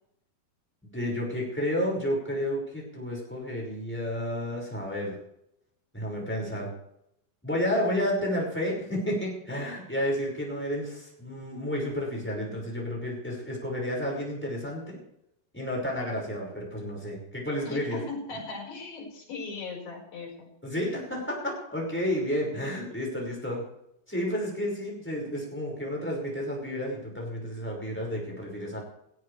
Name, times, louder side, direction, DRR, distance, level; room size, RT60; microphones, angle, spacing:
voice 1, 0.9-5.2 5.9-6.7 7.4-15.0 15.5-18.0 20.6-23.6 24.1-28.8, equal, 5° left, -2 dB, 5.2 m, -31 dB
voice 2, 17.7-20.5, left 3 dB, 65° left, -2 dB, 6.9 m, -38 dB
18.5 x 17.0 x 3.4 m, 0.78 s
omnidirectional pair, 4.6 m